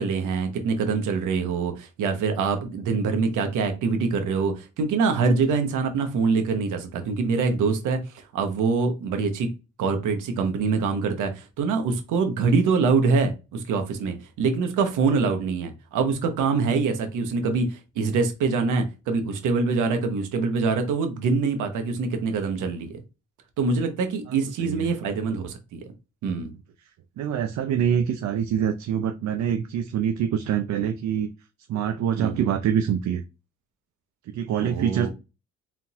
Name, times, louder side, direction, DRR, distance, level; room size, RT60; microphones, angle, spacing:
voice 1, 0.0-9.5 9.8-23.0 23.6-25.8 26.2-26.5 32.2-32.5 34.6-35.1, right 4 dB, 85° right, 1.1 m, -24 dB
voice 2, 27.2-31.3 31.7-33.2 34.3-35.1, right 8 dB, 65° right, 0.6 m, -25 dB
4.4 x 3.7 x 2.4 m
cardioid pair, 90°, 30 cm